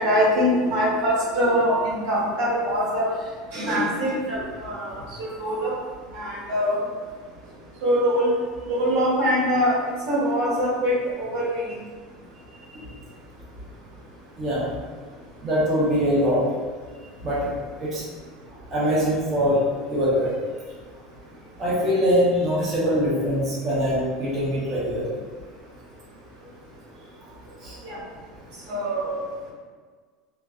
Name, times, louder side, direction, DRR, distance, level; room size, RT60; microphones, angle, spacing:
voice 1, 0.0-3.1 3.5-4.9 5.2-5.7 6.1-6.8 7.8-8.3 8.7-9.8 10.1-11.6 27.8-28.0 28.7-29.2, equal, 80° right, -7 dB, 1.3 m, -23 dB
voice 2, 14.4-14.7 15.4-16.4 17.2-17.5 17.8-18.1 18.7-20.3 21.6-25.2 27.5-27.8, equal, 25° right, -8 dB, 0.8 m, -23 dB
3.1 x 2.3 x 2.4 m, 1.5 s
supercardioid pair, 150°, 0 cm